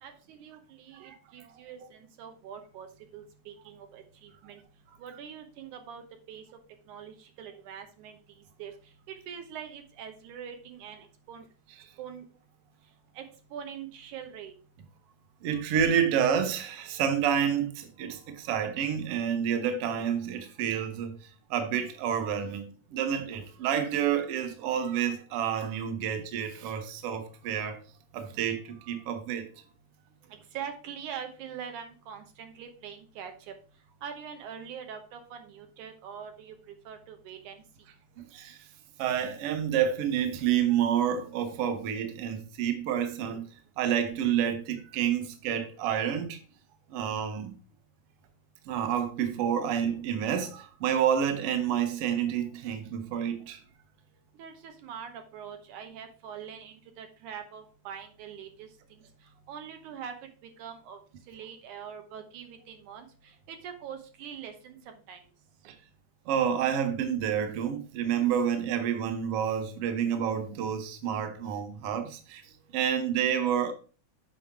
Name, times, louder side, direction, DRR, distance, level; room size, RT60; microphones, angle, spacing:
voice 1, 0.0-2.9 3.1-4.6 5.0-6.4 6.9-8.2 8.6-8.7 9.1-11.5 12.0-12.3 13.2-13.3 13.5-14.5 30.3-33.5 34.0-37.6 54.4-59.0 59.5-60.1 60.6-61.0 61.3-65.2, right 8 dB, 80° right, 2.5 m, -43 dB
voice 2, 0.9-1.6 15.4-21.2 21.5-27.8 28.1-29.5 38.2-38.6 39.0-43.5 43.8-46.4 46.9-47.5 48.7-53.6 65.6-65.7 66.3-72.4 72.7-73.7, right 8 dB, 60° right, 1.6 m, -29 dB
7.6 x 5.1 x 4.7 m
omnidirectional pair, 3.5 m